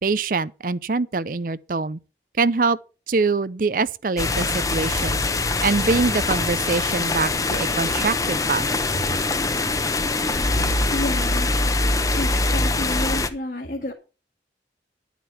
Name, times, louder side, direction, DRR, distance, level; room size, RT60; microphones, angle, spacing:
voice 1, 0.0-2.0 2.4-2.8 3.1-5.2 5.6-8.7 8.9-9.1, right 4 dB, 50° right, 0.5 m, -24 dB
sound 1, 4.2-13.3, left 2 dB, 20° left, 0.8 m, -23 dB
voice 2, 10.9-11.5 12.1-13.9, left 1 dB, 50° left, 1.8 m, -30 dB
11.5 x 8.1 x 5.7 m
head